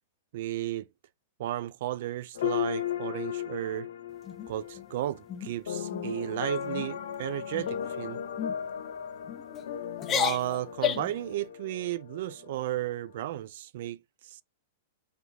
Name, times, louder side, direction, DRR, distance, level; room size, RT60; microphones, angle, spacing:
voice 1, 0.3-0.9 1.4-3.9 4.5-8.2 10.1-14.0 14.2-14.4, right 13 dB, 60° right, 0.4 m, -34 dB
sound 1, 2.4-13.4, left 10 dB, 85° left, 0.9 m, -37 dB
sound 2, 4.2-4.9 5.3-5.5 5.9-6.2 6.6-6.9 7.5-7.9 8.4-8.6 9.3-9.6 10.0-11.2, left 10 dB, 20° left, 0.4 m, -32 dB
4.0 x 3.4 x 3.1 m
supercardioid pair, 150°, 0 cm